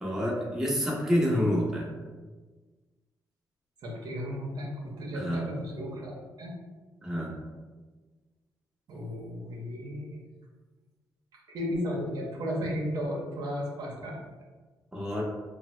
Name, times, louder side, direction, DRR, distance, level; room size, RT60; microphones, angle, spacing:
voice 1, 0.0-1.9 5.1-5.5 7.0-7.4 14.9-15.2, equal, 5° right, -4 dB, 0.7 m, -28 dB
voice 2, 3.8-4.7 5.0-6.5 8.9-10.2 11.5-14.2, equal, 70° right, -2 dB, 0.7 m, -34 dB
3.3 x 2.0 x 3.0 m, 1.3 s
cardioid pair, 115°, 7 cm